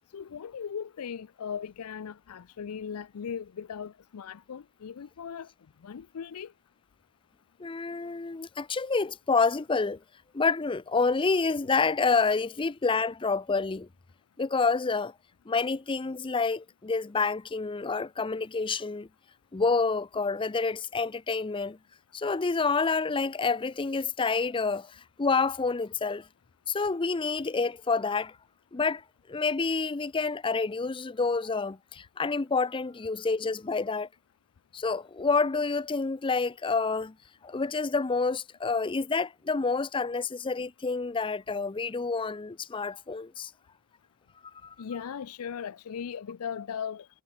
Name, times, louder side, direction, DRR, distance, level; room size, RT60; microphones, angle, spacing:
voice 1, 0.1-5.5 5.8-6.5 44.8-47.1, left 7 dB, 80° left, 0.5 m, -38 dB
voice 2, 7.6-10.0 10.3-13.9 14.4-15.1 15.5-19.1 19.5-21.8 22.1-26.3 26.7-28.3 28.7-29.0 29.3-34.1 34.7-37.1 37.4-43.5 44.6-44.7, left 4 dB, 25° left, 0.5 m, -28 dB
head